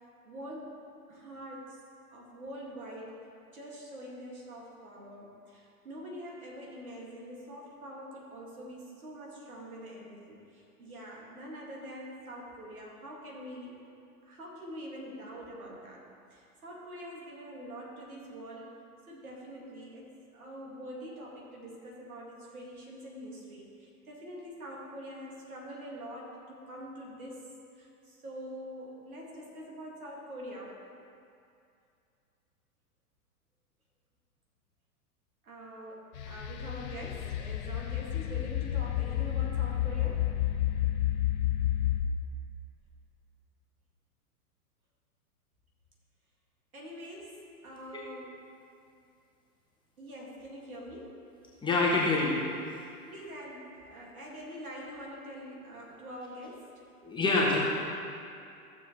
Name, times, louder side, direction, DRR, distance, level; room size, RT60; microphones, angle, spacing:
voice 1, 0.2-0.8 1.1-1.8 2.1-3.2 3.5-13.7 14.2-16.0 16.3-18.8 19.1-27.5 27.8-30.8 35.4-40.3 46.7-48.4 50.0-51.2 53.1-56.7, equal, 65° right, -2 dB, 2.3 m, -45 dB
sound 1, 36.2-42.0, left 13 dB, 30° left, 0.5 m, -30 dB
voice 2, 51.6-52.4 57.0-57.6, left 3 dB, 10° left, -4 dB, 1.1 m, -25 dB
14.5 x 7.0 x 3.2 m, 2.5 s
figure-of-eight pair, 100°, 46 cm